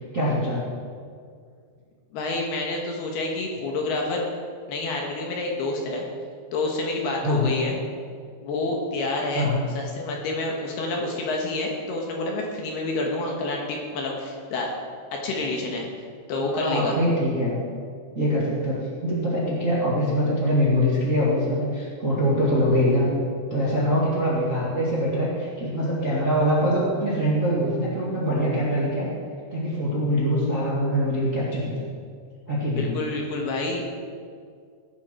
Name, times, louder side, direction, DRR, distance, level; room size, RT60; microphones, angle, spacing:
voice 1, 0.1-0.6 7.2-7.6 9.3-9.6 16.4-17.6 18.1-23.1 23.5-29.1 29.5-31.9 32.5-33.0, equal, 30° right, -7 dB, 1.6 m, -23 dB
voice 2, 2.1-4.2 4.7-6.0 6.5-7.8 8.4-9.5 9.7-14.7 15.1-15.9 16.3-17.0 32.7-33.8, left 2 dB, 65° left, 0 dB, 3.1 m, -28 dB
18.5 x 10.5 x 4.5 m, 2.1 s
omnidirectional pair, 5.4 m